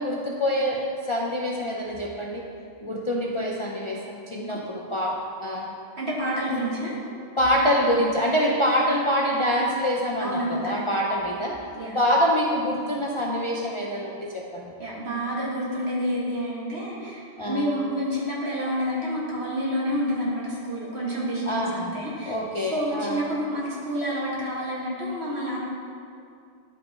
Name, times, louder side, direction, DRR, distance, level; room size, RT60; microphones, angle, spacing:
voice 1, 0.0-2.5 2.8-5.8 7.4-11.6 11.9-14.6 17.4-17.7 21.5-21.9 22.3-23.2, equal, 35° left, -2 dB, 0.5 m, -25 dB
voice 2, 6.0-7.0 10.2-10.8 11.8-12.0 14.8-22.3 22.7-25.6, equal, 60° right, -6 dB, 2.1 m, -29 dB
11.0 x 5.5 x 4.2 m, 2.4 s
omnidirectional pair, 1.2 m